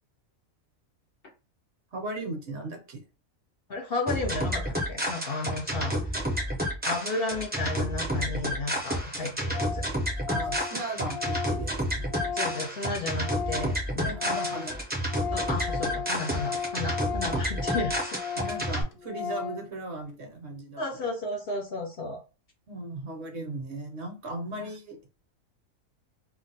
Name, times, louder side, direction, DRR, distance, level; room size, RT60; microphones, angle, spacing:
voice 1, 1.9-3.0 10.3-12.1 14.0-14.8 18.4-21.0 22.7-25.0, right 2 dB, 60° right, 0.9 m, -37 dB
voice 2, 3.7-6.0 6.8-9.8 12.2-14.7 15.3-18.2 20.8-22.2 24.6-24.7, left 3 dB, 60° left, 0.6 m, -33 dB
sound 1, 4.1-18.8, equal, 10° right, 0.4 m, -30 dB
Organ, 8.6-8.7 8.9-9.0 9.2-9.3 9.5-9.9 10.2-13.8 14.1-19.7, left 7 dB, 75° left, 0.9 m, -35 dB
2.5 x 2.1 x 4.0 m
omnidirectional pair, 1.4 m